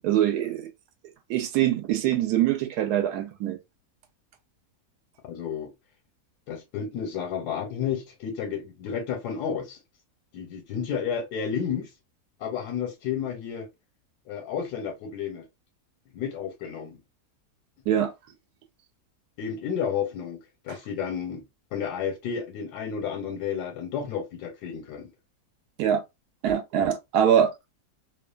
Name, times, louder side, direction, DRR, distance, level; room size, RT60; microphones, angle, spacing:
voice 1, 0.0-0.7 1.3-3.6 17.9-18.1 20.7-20.8 25.8-26.0 26.4-27.7, right 10 dB, 80° right, 1.1 m, -24 dB
voice 2, 5.2-5.7 6.5-9.8 10.3-11.9 12.4-13.7 14.3-15.4 16.1-17.0 19.4-20.4 20.6-21.4 21.7-25.1, left 7 dB, 85° left, 1.2 m, -31 dB
2.8 x 2.2 x 2.3 m
omnidirectional pair, 1.7 m